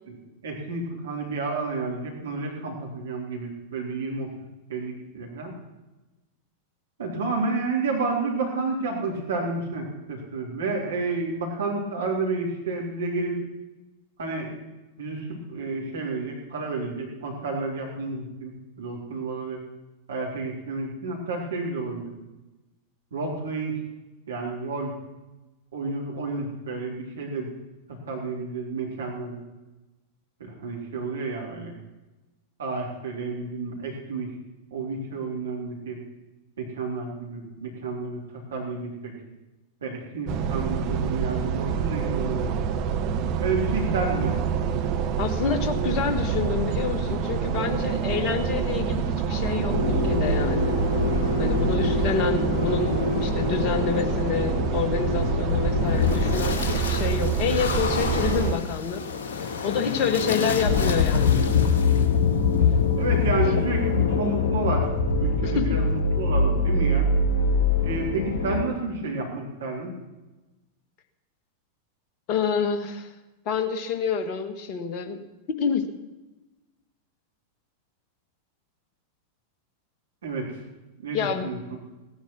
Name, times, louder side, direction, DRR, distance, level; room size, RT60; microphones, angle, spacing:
voice 1, 0.4-4.3 4.7-5.5 7.0-13.4 14.2-14.5 15.0-19.6 20.1-22.1 23.1-23.8 24.3-24.9 25.7-27.5 28.1-29.4 30.4-31.7 32.6-34.3 34.7-36.0 36.6-39.1 39.8-42.7 43.4-44.4 60.0-60.1 63.0-64.9 65.2-67.1 67.8-70.0 80.2-80.5 81.0-81.8, right 3 dB, 65° right, -1 dB, 3.6 m, -30 dB
sound 1, 40.3-58.5, right 7 dB, 40° right, 1.2 m, -27 dB
voice 2, 45.2-50.8 51.4-59.1 59.6-61.4 63.4-63.5 65.4-65.8 72.3-73.1 73.4-75.2 75.6-75.9 81.1-81.5, left 6 dB, 40° left, 7 dB, 1.7 m, -28 dB
sound 2, 49.7-68.6, left 4 dB, 55° left, 2.1 m, -24 dB
17.5 x 10.5 x 6.3 m, 1.1 s
figure-of-eight pair, 90°, 0 cm